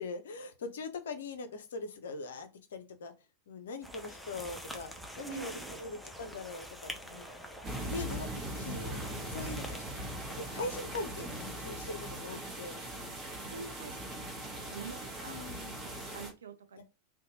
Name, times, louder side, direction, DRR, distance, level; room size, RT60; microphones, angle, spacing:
voice 1, 0.0-3.1 3.5-7.3 7.9-10.1 10.3-12.8 15.3-15.8 16.8-16.9, left 3 dB, 60° left, 0.5 m, -42 dB
sound 1, 3.8-11.6, equal, ahead, 0.4 m, -46 dB
voice 2, 5.2-5.8 12.3-12.4 13.5-14.0 14.3-16.8, right 6 dB, 70° right, 0.4 m, -46 dB
sound 2, 7.6-16.3, right 1 dB, 25° right, 0.9 m, -40 dB
2.7 x 2.1 x 2.8 m
figure-of-eight pair, 90°, 0 cm